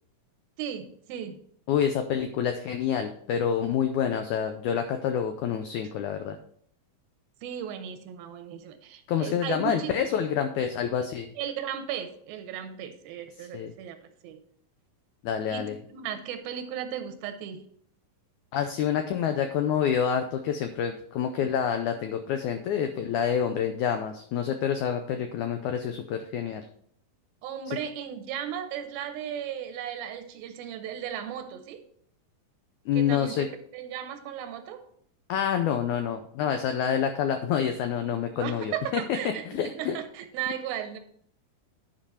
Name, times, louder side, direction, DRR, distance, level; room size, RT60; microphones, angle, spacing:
voice 1, 0.6-1.4 7.4-9.9 11.4-14.0 14.2-14.4 15.5-17.7 27.4-31.8 32.9-33.5 33.7-34.8 38.4-41.0, right 9 dB, 85° right, 8 dB, 2.7 m, -36 dB
voice 2, 1.7-6.4 9.1-11.3 13.4-13.7 15.2-15.7 18.5-26.7 27.7-27.8 32.9-33.5 35.3-39.0 39.5-40.0, left 8 dB, 85° left, 7 dB, 1.7 m, -27 dB
10.5 x 5.2 x 4.2 m, 0.62 s
omnidirectional pair, 4.2 m